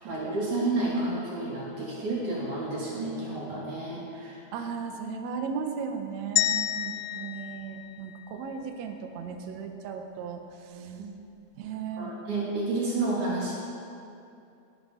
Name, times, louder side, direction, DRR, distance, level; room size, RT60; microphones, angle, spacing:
voice 1, 0.0-4.4 8.3-8.4 10.7-11.1 12.0-13.5, right 2 dB, 50° right, -6 dB, 3.8 m, -30 dB
voice 2, 4.5-10.9 11.5-12.1, right 6 dB, 80° right, 4 dB, 1.6 m, -36 dB
sound 1, 6.4-8.6, left 13 dB, 80° left, 2.5 m, -30 dB
18.5 x 11.0 x 5.1 m, 2.6 s
omnidirectional pair, 4.8 m